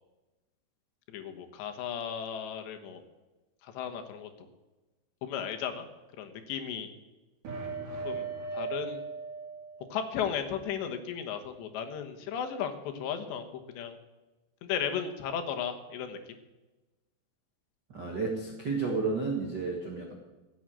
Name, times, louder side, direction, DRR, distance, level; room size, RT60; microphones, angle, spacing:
voice 1, 1.1-3.0 3.6-4.3 5.2-5.9 6.2-6.9 8.0-8.3 8.5-9.0 9.9-13.5 13.7-14.0 14.6-16.2, left 8 dB, 80° left, 6 dB, 3.5 m, -35 dB
sound 1, 7.4-10.1, right 4 dB, 50° right, 3.8 m, -38 dB
voice 2, 17.9-20.1, right 4 dB, 75° right, 1 dB, 0.9 m, -32 dB
15.5 x 8.1 x 8.9 m, 1.1 s
omnidirectional pair, 5.1 m